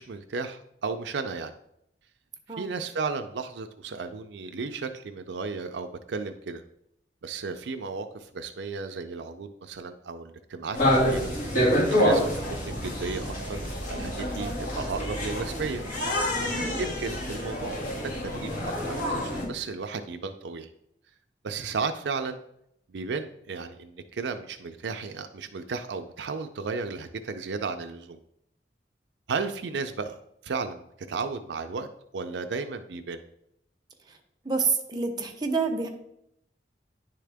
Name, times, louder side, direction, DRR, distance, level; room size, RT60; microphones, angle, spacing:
voice 1, 0.0-1.5 2.6-6.6 7.2-11.3 11.9-14.5 14.7-15.8 16.8-17.9 18.2-20.7 21.4-22.4 22.9-28.2 29.3-30.2 30.4-31.9 32.1-33.2, right 4 dB, 80° right, 7 dB, 0.5 m, -34 dB
sound 1, 10.7-19.4, equal, 50° left, 2.0 m, -27 dB
voice 2, 16.3-16.8 34.4-35.9, right 4 dB, 25° right, 3 dB, 0.9 m, -28 dB
10.0 x 3.7 x 3.4 m, 0.76 s
head